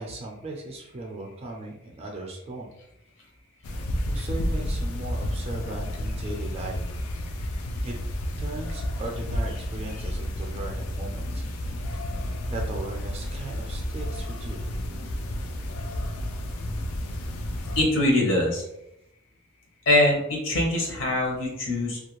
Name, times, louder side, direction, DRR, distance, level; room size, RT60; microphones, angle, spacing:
voice 1, 0.0-2.7 4.1-6.8 7.8-7.9 8.4-11.7 12.2-14.7, right 2 dB, 30° right, 1 dB, 0.4 m, -37 dB
sound 1, 3.6-17.8, left 1 dB, 85° left, 0.4 m, -31 dB
voice 2, 17.8-18.6 19.9-22.0, left 1 dB, 60° left, 0 dB, 0.8 m, -23 dB
2.4 x 2.2 x 3.0 m, 0.82 s
head